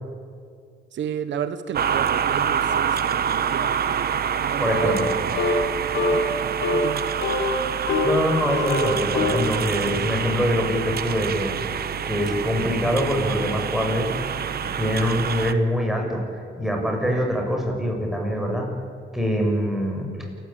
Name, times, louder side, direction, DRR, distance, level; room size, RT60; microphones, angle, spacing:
voice 1, 0.9-5.0 6.0-6.2 6.7-7.0, right 8 dB, 65° right, 11 dB, 1.3 m, -32 dB
sound 1, 1.7-15.5, right 8 dB, 50° right, 1.1 m, -26 dB
voice 2, 4.6-5.0 8.0-11.5 12.0-14.1 14.6-18.7 19.1-20.1, equal, ahead, 1 dB, 6.4 m, -24 dB
sound 2, 4.7-5.1 5.4-5.6 5.9-6.3 6.6-6.8 7.2-8.2 8.5-9.5, left 2 dB, 70° left, 3.4 m, -23 dB
28.5 x 14.0 x 8.9 m, 2.2 s
cardioid pair, 90°, 20 cm